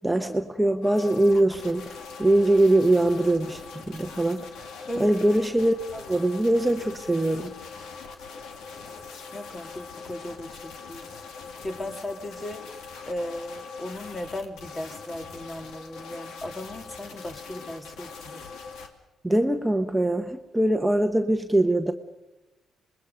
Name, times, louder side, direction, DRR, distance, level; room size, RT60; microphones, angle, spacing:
voice 1, 0.0-4.5 5.0-7.5 19.2-21.9, right 1 dB, 10° right, 5 dB, 1.1 m, -22 dB
sound 1, 0.8-18.9, left 5 dB, 85° left, 2.2 m, -42 dB
voice 2, 9.3-11.1 11.6-12.7 13.1-18.4, left 1 dB, 20° left, 6 dB, 1.9 m, -36 dB
26.5 x 21.5 x 5.2 m, 1.1 s
cardioid pair, 90°, 0 cm